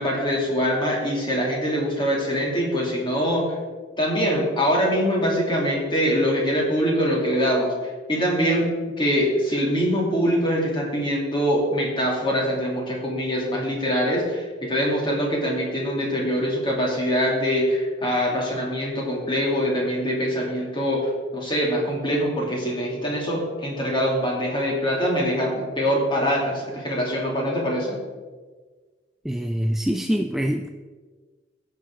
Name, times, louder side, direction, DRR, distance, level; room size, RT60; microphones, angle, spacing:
voice 1, 0.0-3.4 4.0-7.7 8.1-8.7 9.0-28.0, equal, 25° left, -3 dB, 2.7 m, -23 dB
voice 2, 29.2-30.7, equal, ahead, 4 dB, 0.4 m, -24 dB
15.5 x 6.7 x 3.8 m, 1.4 s
head